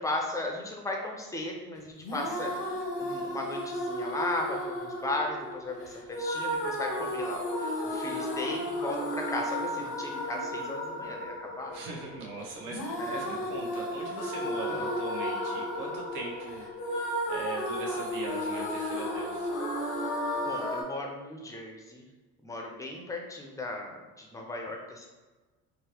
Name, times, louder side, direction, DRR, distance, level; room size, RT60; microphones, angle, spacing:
voice 1, 0.0-2.6 2.9-11.8 13.0-13.2 14.6-14.9 20.4-22.0 22.4-25.1, left 2 dB, 10° left, 1 dB, 0.6 m, -36 dB
sound 1, 2.0-20.8, equal, 75° left, 1.1 m, -33 dB
voice 2, 11.7-19.5, right 3 dB, 55° right, -2 dB, 1.0 m, -40 dB
3.8 x 2.1 x 2.9 m, 1.2 s
supercardioid pair, 80°, 39 cm